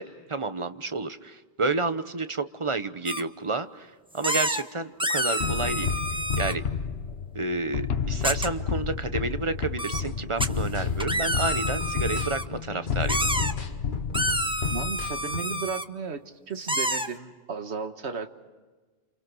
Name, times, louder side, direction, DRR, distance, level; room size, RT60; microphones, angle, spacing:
voice 1, 0.0-6.0 6.4-6.6 7.3-13.2, right 3 dB, 30° right, 11 dB, 1.0 m, -30 dB
sound 1, 3.1-3.2 4.2-4.6 5.0-6.5 8.2-8.5 9.8-10.0 10.4-10.5 11.0-12.4 13.1-13.5 14.1-15.8 16.7-17.1, right 1 dB, 5° right, 0.9 m, -28 dB
sound 2, 5.4-15.3, left 6 dB, 65° left, 1.3 m, -31 dB
sound 3, 10.0-15.7, left 5 dB, 45° left, 1.5 m, -40 dB
voice 2, 14.7-16.2 16.5-18.5, right 5 dB, 70° right, 8 dB, 1.7 m, -34 dB
29.5 x 29.0 x 6.3 m, 1.3 s
omnidirectional pair, 1.2 m